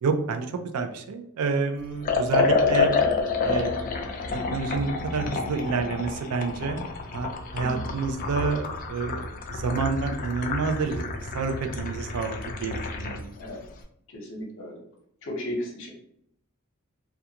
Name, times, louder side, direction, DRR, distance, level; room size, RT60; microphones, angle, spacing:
voice 1, 0.0-3.0 3.4-3.9 4.5-11.0 11.3-13.3, right 4 dB, 80° right, 6 dB, 0.4 m, -29 dB
Liquid, 2.0-13.2, left 4 dB, 40° left, 0.3 m, -28 dB
voice 2, 14.1-14.8 15.2-15.9, equal, 60° left, 0 dB, 0.7 m, -35 dB
2.3 x 2.3 x 2.8 m, 0.70 s
head